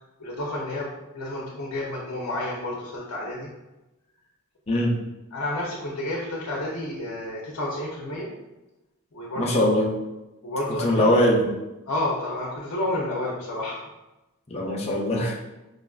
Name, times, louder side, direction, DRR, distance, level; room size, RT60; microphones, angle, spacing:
voice 1, 0.2-3.5 5.3-8.3 9.1-9.7 10.4-11.1 11.9-13.8, left 1 dB, 75° left, -3 dB, 0.6 m, -30 dB
voice 2, 4.7-5.0 9.4-9.9 10.8-11.5 14.5-15.3, left 1 dB, 30° left, -2 dB, 0.5 m, -21 dB
4.8 x 2.4 x 2.3 m, 1.0 s
head